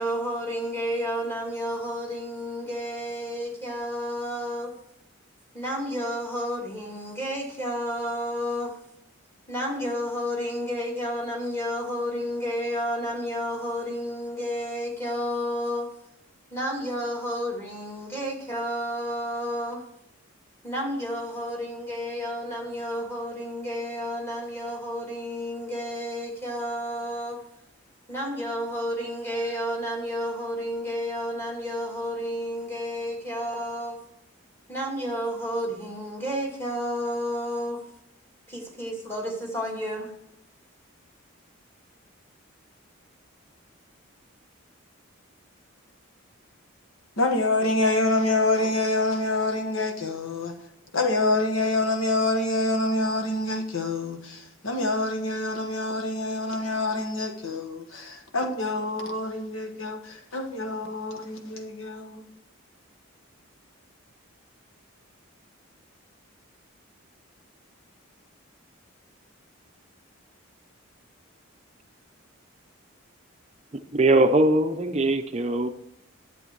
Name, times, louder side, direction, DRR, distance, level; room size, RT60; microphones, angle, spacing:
voice 1, 0.0-4.7 5.5-8.8 9.5-15.9 16.5-19.8 20.6-27.4 28.1-34.0 34.7-37.8 38.5-40.1, equal, 10° left, 2.3 m, -31 dB
voice 2, 47.2-50.5 50.9-62.2, left 2 dB, 75° left, 1.4 m, -26 dB
voice 3, 73.7-75.7, right 2 dB, 30° right, 0.5 m, -21 dB
11.0 x 7.8 x 4.6 m
head